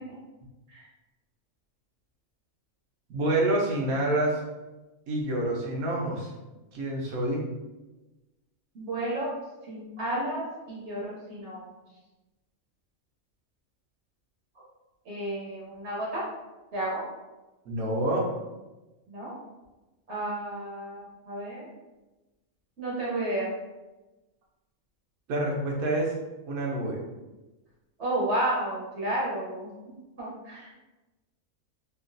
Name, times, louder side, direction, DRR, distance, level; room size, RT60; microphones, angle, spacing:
voice 1, 3.1-4.4 5.1-6.3 6.7-7.4 17.7-18.3 25.3-26.1 26.5-27.0, right 1 dB, 85° right, -2 dB, 1.2 m, -27 dB
voice 2, 8.7-9.3 9.6-11.6 15.1-16.2 16.7-17.0 19.1-19.3 20.1-21.7 22.8-23.5 28.0-29.7 30.2-30.7, right 1 dB, 60° right, -5 dB, 0.9 m, -32 dB
3.0 x 2.4 x 2.5 m, 1.1 s
omnidirectional pair, 1.5 m